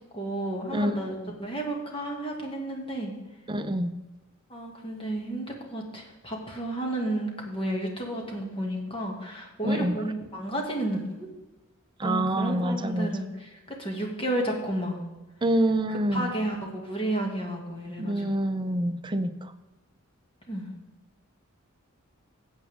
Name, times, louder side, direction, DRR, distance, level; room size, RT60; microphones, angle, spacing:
voice 1, 0.1-3.1 4.5-11.3 12.0-15.0 15.9-18.3 20.5-20.7, right 1 dB, 25° left, 0 dB, 2.1 m, -32 dB
voice 2, 3.5-3.9 9.6-10.0 12.0-13.1 15.4-16.3 18.0-19.5, right 1 dB, 20° right, 9 dB, 0.6 m, -26 dB
15.5 x 8.1 x 3.6 m, 1.1 s
head